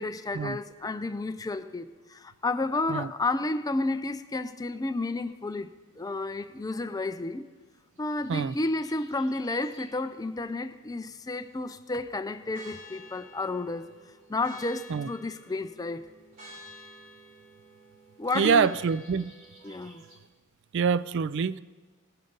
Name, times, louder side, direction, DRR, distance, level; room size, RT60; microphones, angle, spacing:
voice 1, 0.0-7.4 8.0-13.9 14.3-16.1 18.2-18.7 19.6-20.0, left 2 dB, 15° left, 0.4 m, -31 dB
sound 1, 8.0-10.0 12.5-20.2, equal, 35° right, 3.2 m, -50 dB
voice 2, 18.3-19.3 20.7-21.6, right 6 dB, 55° right, 0.3 m, -25 dB
20.5 x 9.0 x 4.0 m
head